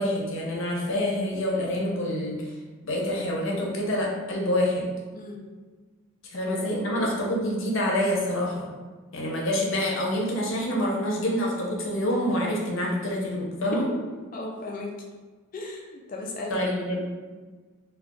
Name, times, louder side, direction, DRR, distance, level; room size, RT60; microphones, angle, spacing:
voice 1, 0.0-2.5 2.8-4.9 6.2-8.7 9.1-13.9 16.5-17.0, left 1 dB, 70° left, -2 dB, 0.7 m, -27 dB
voice 2, 6.8-7.1 14.3-14.9 15.5-16.6, left 2 dB, 40° left, 0 dB, 0.4 m, -36 dB
2.4 x 2.3 x 3.6 m, 1.4 s
head